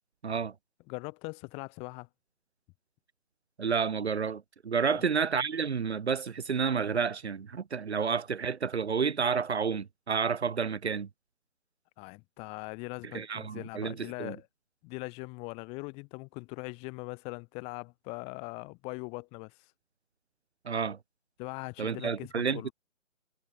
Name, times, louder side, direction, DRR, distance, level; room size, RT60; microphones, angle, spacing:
voice 1, 0.2-0.5 3.6-11.1 13.1-14.3 20.7-21.0 21.8-22.7, right 6 dB, 55° right, 2.6 m, -30 dB
voice 2, 0.9-2.1 4.8-5.0 12.0-14.5 14.8-19.5 21.4-22.7, left 29 dB, 15° left, 7.9 m, -41 dB
hypercardioid pair, 165°, 39 cm